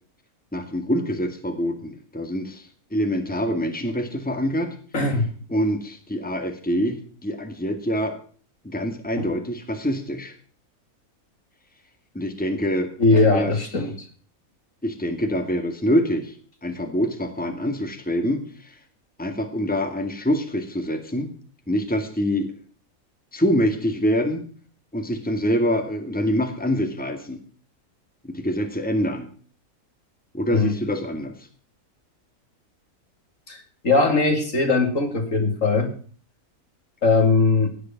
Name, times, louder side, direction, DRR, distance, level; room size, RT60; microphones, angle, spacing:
voice 1, 0.5-4.7 5.5-8.2 8.6-10.3 12.1-13.5 14.8-16.3 16.6-18.8 19.2-21.3 21.7-22.5 23.3-24.4 24.9-27.4 28.2-29.3 30.3-31.3, equal, 5° left, 6 dB, 2.2 m, -25 dB
voice 2, 4.9-5.3 9.2-9.3 13.0-13.9 30.5-30.8 33.5-35.9 37.0-37.7, left 3 dB, 60° left, 5 dB, 3.1 m, -20 dB
16.5 x 10.5 x 6.0 m, 0.44 s
omnidirectional pair, 1.6 m